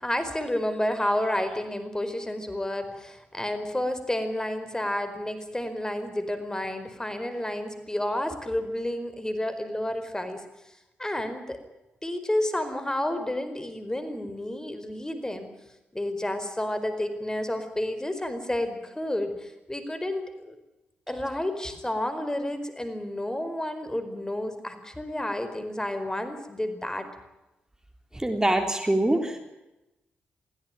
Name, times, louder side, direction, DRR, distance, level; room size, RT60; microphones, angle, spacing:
voice 1, 0.0-10.4 11.0-11.6 12.0-15.5 15.9-20.6 21.1-27.1, left 1 dB, 15° left, 9 dB, 4.6 m, -30 dB
voice 2, 28.1-29.4, right 1 dB, 15° right, 5 dB, 3.8 m, -24 dB
23.0 x 16.5 x 9.2 m, 0.96 s
hypercardioid pair, 40°, 4 cm